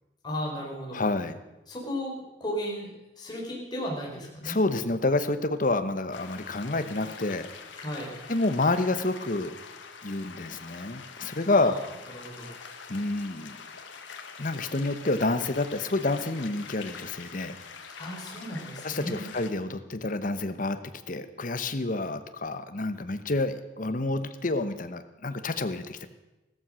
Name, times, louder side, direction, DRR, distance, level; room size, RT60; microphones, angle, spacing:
voice 1, 0.2-1.0 1.7-2.1 2.4-4.6 7.8-8.1 11.4-11.8 12.1-12.5 18.0-19.2, equal, 20° left, -2 dB, 4.1 m, -35 dB
voice 2, 0.9-1.4 4.4-7.5 8.3-9.6 10.0-11.8 12.9-13.6 14.4-17.6 18.8-20.8 21.1-26.1, left 2 dB, 45° left, 9 dB, 1.0 m, -28 dB
sound 1, 6.1-19.5, left 5 dB, 80° left, 1.6 m, -45 dB
15.5 x 13.5 x 6.3 m, 1.0 s
head